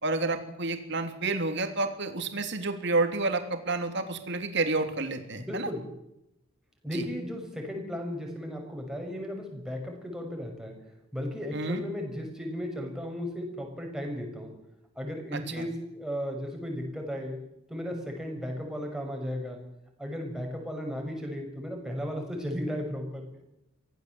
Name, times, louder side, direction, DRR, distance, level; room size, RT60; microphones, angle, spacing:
voice 1, 0.0-5.7 6.9-7.0 11.5-11.8 15.3-15.7, right 3 dB, 60° right, 6 dB, 3.2 m, -30 dB
voice 2, 5.4-5.9 6.8-10.8 11.1-14.5 14.9-17.4 17.7-19.6 20.0-23.4, equal, 5° right, 1 dB, 6.2 m, -35 dB
24.5 x 16.5 x 7.9 m, 0.84 s
head